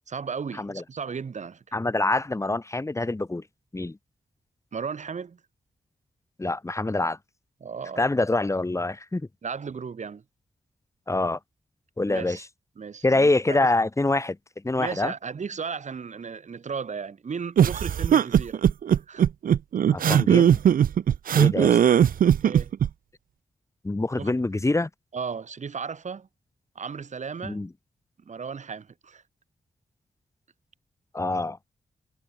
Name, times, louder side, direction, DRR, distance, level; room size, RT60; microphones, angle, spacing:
voice 1, 0.1-1.6 4.7-5.4 7.6-8.1 9.4-10.2 12.1-12.4 12.8-13.7 14.8-18.6 18.9-19.3 20.3-20.4 22.4-22.7 24.2-24.3 25.1-26.3 26.7-27.6 28.2-29.2, right 6 dB, 55° right, 3.3 m, -35 dB
voice 2, 1.7-3.4 3.7-4.0 6.4-7.2 8.0-9.2 11.1-11.4 12.0-12.4 13.0-14.4 14.6-15.1 19.9-20.6 21.4-21.8 23.8-24.9 27.4-27.7 31.1-31.6, left 2 dB, 20° left, 4.9 m, -25 dB
sound 1, 17.6-22.9, right 9 dB, 80° right, 0.6 m, -19 dB
wide cardioid pair, 115°, 14 cm